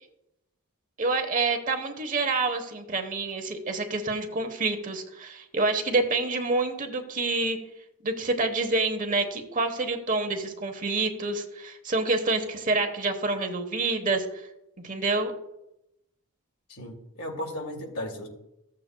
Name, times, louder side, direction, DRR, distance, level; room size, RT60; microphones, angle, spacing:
voice 1, 1.0-7.6 8.0-14.2 14.8-15.3, right 3 dB, 35° right, 6 dB, 1.0 m, -27 dB
voice 2, 16.7-18.3, left 1 dB, 75° left, 1 dB, 2.4 m, -35 dB
15.0 x 7.6 x 2.2 m, 0.88 s
head